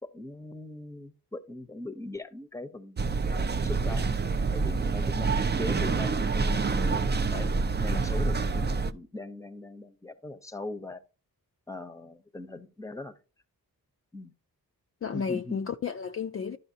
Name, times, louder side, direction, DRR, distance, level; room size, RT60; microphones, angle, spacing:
voice 1, 0.0-3.0 3.6-4.2 4.5-7.5 7.8-11.0 11.7-13.1 14.1-14.3 15.1-15.6, left 2 dB, 10° left, 0.7 m, -40 dB
sound 1, 3.0-8.9, right 4 dB, 25° right, 0.4 m, -27 dB
voice 2, 15.0-16.6, left 6 dB, 35° left, 0.4 m, -33 dB
12.0 x 5.4 x 2.7 m
cardioid pair, 55°, 39 cm